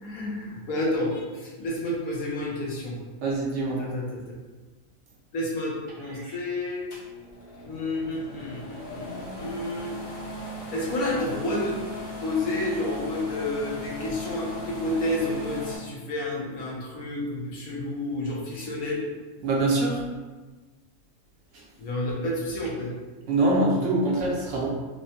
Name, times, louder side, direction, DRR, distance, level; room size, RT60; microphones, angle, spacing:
voice 1, 0.0-2.9 3.7-4.2 5.3-6.8 7.6-9.9 10.7-11.7 12.2-19.0 21.8-22.9, left 1 dB, 75° left, -4 dB, 1.3 m, -30 dB
voice 2, 3.2-3.8 6.2-6.3 19.4-20.0 23.3-24.7, right 2 dB, 65° right, -3 dB, 0.9 m, -24 dB
sound 1, 6.9-15.8, left 2 dB, 40° left, 1.1 m, -38 dB
5.0 x 2.1 x 2.8 m, 1.3 s
omnidirectional pair, 1.5 m